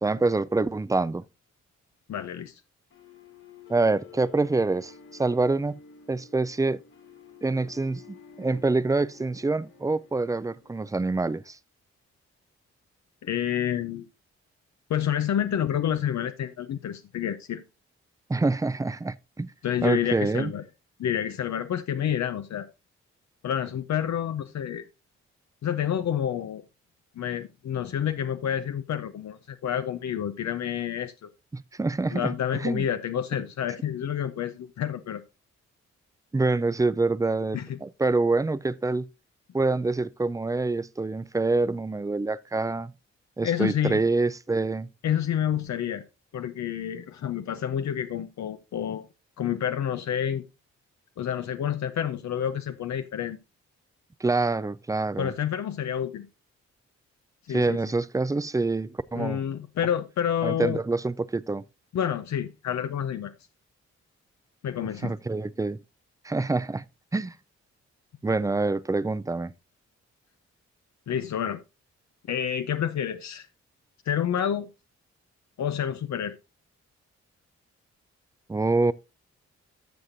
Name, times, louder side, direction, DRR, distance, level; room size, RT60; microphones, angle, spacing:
voice 1, 0.0-1.2 3.7-5.8 6.1-6.8 7.4-11.6 18.3-19.5 19.8-20.5 31.5-32.9 36.3-39.1 39.5-42.9 43.4-44.9 54.2-55.3 57.5-59.4 60.4-61.6 65.0-65.8 66.2-66.8 67.1-67.3 68.2-69.5 78.5-78.9, right 3 dB, 10° right, 0.4 m, -26 dB
voice 2, 2.1-2.5 13.2-14.1 14.9-17.6 19.6-20.6 21.0-22.7 23.4-24.8 25.6-26.6 27.2-31.3 32.1-35.2 37.5-37.8 43.4-44.0 45.0-46.0 46.3-49.1 49.4-50.4 51.2-53.4 55.2-56.3 57.5-57.8 59.1-60.8 61.9-63.3 64.6-65.1 71.1-71.6 72.3-73.5 74.1-74.7 75.6-76.4, left 9 dB, 70° left, 0.7 m, -29 dB
sound 1, 2.9-10.9, left 6 dB, 90° left, 3.1 m, -50 dB
13.0 x 6.5 x 2.6 m
cardioid pair, 55°, 29 cm